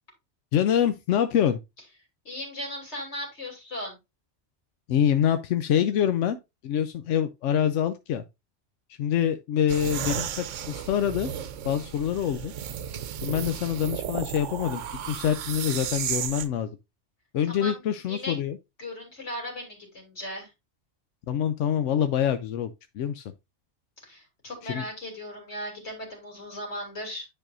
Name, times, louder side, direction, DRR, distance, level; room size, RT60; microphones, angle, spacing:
voice 1, 0.5-1.6 4.9-6.4 6.6-8.2 8.9-11.3 11.6-12.5 13.2-16.8 17.3-18.6 21.3-23.3 24.6-24.8, left 9 dB, 85° left, 0.9 m, -25 dB
voice 2, 2.2-4.0 17.5-17.8 18.1-18.4 18.8-20.5 24.0-27.3, left 1 dB, 70° left, 3.1 m, -37 dB
sound 1, 9.7-16.5, right 9 dB, 85° right, 1.0 m, -34 dB
10.0 x 4.7 x 2.5 m
omnidirectional pair, 1.2 m